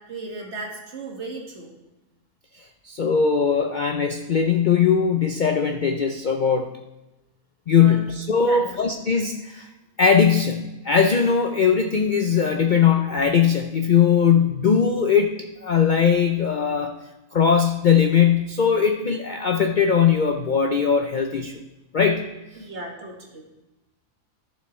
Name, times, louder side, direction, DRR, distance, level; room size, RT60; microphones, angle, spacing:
voice 1, 0.1-1.7 7.8-8.0 8.4-8.8 22.6-23.4, right 2 dB, 50° right, -1 dB, 1.9 m, -36 dB
voice 2, 2.8-6.7 7.7-9.7 10.0-15.3 15.6-16.9 17.3-21.5 21.9-22.3, left 7 dB, 60° left, 5 dB, 0.5 m, -20 dB
14.0 x 7.2 x 3.2 m, 1.0 s
omnidirectional pair, 1.5 m